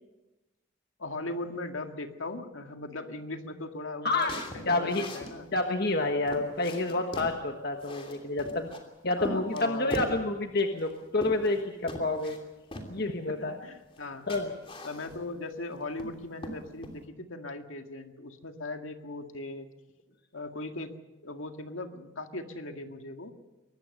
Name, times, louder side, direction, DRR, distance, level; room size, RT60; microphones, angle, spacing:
voice 1, 1.0-5.5 9.2-10.2 13.3-14.3 14.8-19.7 20.3-20.9 21.2-23.3, left 2 dB, 85° left, 5 dB, 2.0 m, -39 dB
voice 2, 4.0-4.3 4.7-5.0 5.5-8.7 9.0-12.4 12.9-13.6 14.3-14.5, left 2 dB, 50° left, 4 dB, 1.4 m, -29 dB
sound 1, 4.2-5.3 5.9-6.0 6.3-7.4 7.8-8.8 9.2-10.2 10.8-11.6 11.9-12.4 12.7-12.9 13.9-14.0 14.3-15.3 15.7-16.1 16.4-17.0, left 1 dB, 30° left, 3.0 m, -39 dB
23.5 x 19.5 x 6.7 m, 1.0 s
head